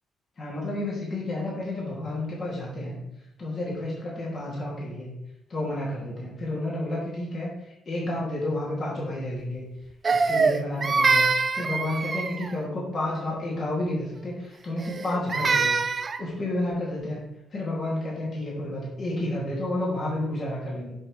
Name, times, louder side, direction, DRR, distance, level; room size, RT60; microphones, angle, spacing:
voice 1, 0.4-3.0 3.4-5.1 5.5-7.5 7.9-9.7 10.1-11.3 11.5-15.8 16.2-17.2 17.5-20.9, left 1 dB, 50° left, -5 dB, 2.4 m, -30 dB
Crying sobbing, 10.0-12.6 14.8-16.2, right 4 dB, 40° right, 0.4 m, -24 dB
6.2 x 6.0 x 3.2 m, 0.87 s
cardioid pair, 90°, 0 cm